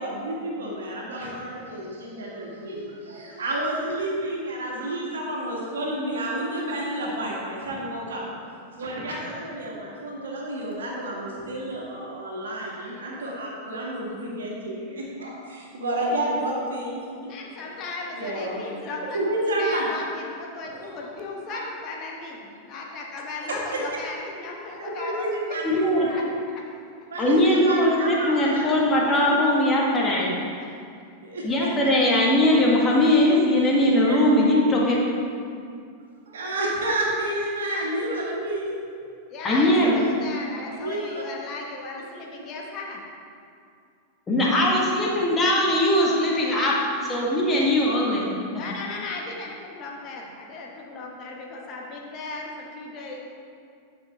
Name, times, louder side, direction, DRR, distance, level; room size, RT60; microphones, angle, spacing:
voice 1, 0.0-8.2 8.7-17.1 18.1-18.6 19.1-19.9 20.5-20.6 21.5-21.6 24.8-26.1 27.1-28.9 30.3-30.5 31.2-31.5 34.1-34.2 36.3-38.7 40.7-41.0, right 1 dB, 65° right, -3 dB, 1.9 m, -30 dB
voice 2, 17.3-26.6 27.0-27.4 27.9-28.0 28.9-29.6 30.5-30.7 31.4-31.5 39.3-43.0 48.6-53.2, left 3 dB, 35° left, -1 dB, 1.4 m, -37 dB
voice 3, 25.6-26.1 27.2-30.3 31.4-35.0 39.4-40.0 44.3-46.7 47.1-48.3, left 1 dB, 20° left, -3 dB, 1.8 m, -20 dB
10.5 x 6.1 x 3.7 m, 2.3 s
figure-of-eight pair, 90°, 0 cm